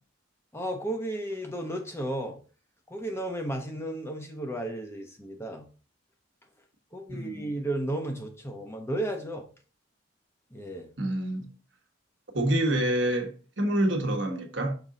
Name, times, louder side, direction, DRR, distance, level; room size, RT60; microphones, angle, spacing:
voice 1, 0.5-2.4 2.9-5.6 6.9-9.5 10.5-10.9, right 1 dB, 15° left, 1.0 m, -33 dB
voice 2, 7.1-7.5 11.0-11.5 12.3-14.7, right 1 dB, 65° right, 1.4 m, -27 dB
6.1 x 4.4 x 3.8 m
head